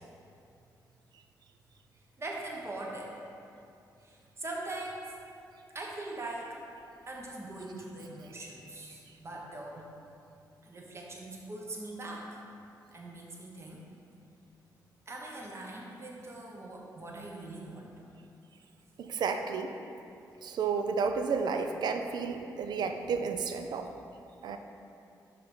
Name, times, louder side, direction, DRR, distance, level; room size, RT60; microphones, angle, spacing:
voice 1, 2.2-3.1 4.0-5.1 5.7-6.6 7.1-9.9 10.6-12.4 12.9-13.8 15.1-17.9, right 2 dB, 35° right, -2 dB, 1.1 m, -41 dB
voice 2, 19.0-19.8 20.4-23.9 24.4-24.6, right 5 dB, 75° right, 6 dB, 0.4 m, -32 dB
5.5 x 3.5 x 5.6 m, 2.6 s
cardioid pair, 70°, 7 cm